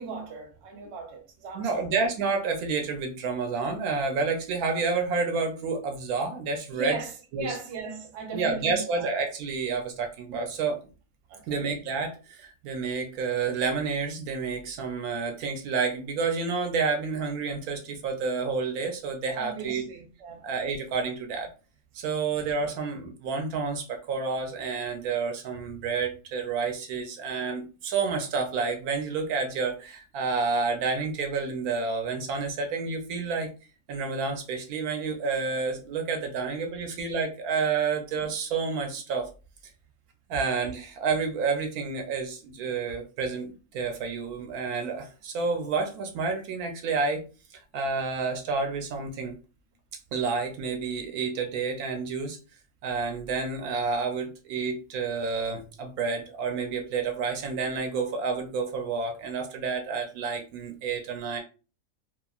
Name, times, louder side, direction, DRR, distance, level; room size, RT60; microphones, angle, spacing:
voice 1, 0.0-1.8 6.7-9.1 11.3-11.6 19.4-20.4, right 4 dB, 55° right, 0.9 m, -37 dB
voice 2, 1.5-7.0 7.3-7.6 8.3-10.8 11.5-19.8 20.4-21.5 21.9-33.5 33.9-39.3 40.3-47.2 47.7-49.3 50.1-52.4 52.8-61.4, right 4 dB, 80° right, 1.1 m, -29 dB
2.9 x 2.5 x 2.3 m
omnidirectional pair, 1.6 m